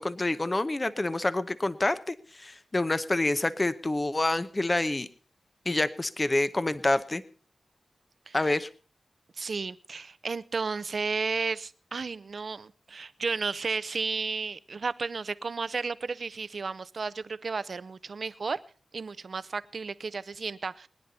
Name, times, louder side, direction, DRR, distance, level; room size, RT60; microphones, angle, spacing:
voice 1, 0.0-5.1 5.7-7.2 8.3-8.7, left 2 dB, 25° left, 13 dB, 0.8 m, -27 dB
voice 2, 9.4-18.6 18.9-20.9, right 4 dB, 60° right, 16 dB, 0.6 m, -33 dB
21.5 x 10.5 x 4.1 m, 0.39 s
wide cardioid pair, 85°, 0 cm